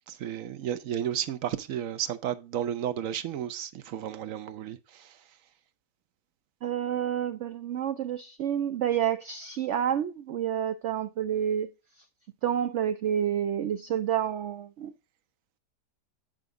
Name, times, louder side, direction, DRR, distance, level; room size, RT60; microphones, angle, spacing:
voice 1, 0.1-5.2, right 10 dB, 65° right, 0.9 m, -33 dB
voice 2, 6.6-11.7 12.0-12.1 12.4-14.9, right 9 dB, 85° right, 0.6 m, -29 dB
9.0 x 5.4 x 3.6 m
omnidirectional pair, 1.8 m